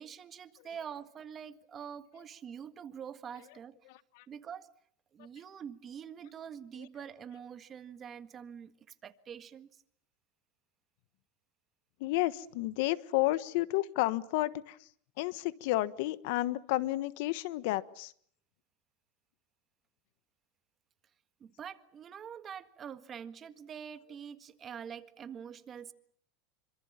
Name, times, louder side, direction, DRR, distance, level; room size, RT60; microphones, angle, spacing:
voice 1, 0.0-3.7 4.3-4.7 5.1-8.7 9.0-9.8 21.4-25.9, right 8 dB, 30° right, 1.7 m, -45 dB
voice 2, 3.9-4.2 12.0-14.8 15.2-18.1, left 17 dB, 65° left, 1.3 m, -31 dB
27.5 x 25.5 x 7.4 m
supercardioid pair, 135°, 0 cm